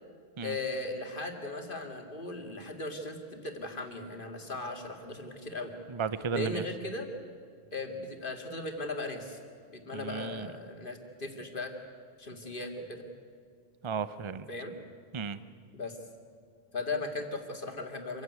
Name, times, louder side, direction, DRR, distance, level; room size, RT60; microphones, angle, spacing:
voice 1, 0.4-5.8 6.3-7.1 7.7-9.4 9.7-11.7 12.2-13.1 14.5-14.8 15.7-16.0 16.7-18.2, left 2 dB, 55° left, 4 dB, 2.5 m, -37 dB
voice 2, 5.9-6.6 9.9-10.5 13.8-14.5 15.1-15.4, right 6 dB, 30° right, 14 dB, 0.7 m, -34 dB
26.5 x 15.5 x 9.5 m, 2.2 s
omnidirectional pair, 1.1 m